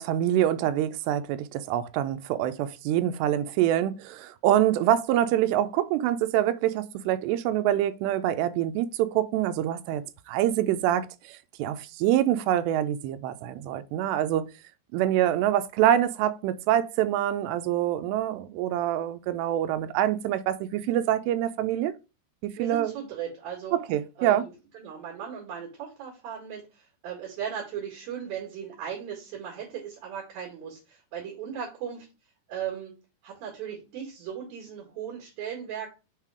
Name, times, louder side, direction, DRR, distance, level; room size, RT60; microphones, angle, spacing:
voice 1, 0.0-14.5 14.9-22.0 22.4-22.9 23.7-24.5, right 12 dB, 80° right, 2.7 m, -25 dB
voice 2, 22.6-23.8 24.2-32.1 32.5-32.9 33.2-35.9, right 8 dB, 60° right, 3.5 m, -37 dB
7.4 x 3.6 x 4.9 m
omnidirectional pair, 5.0 m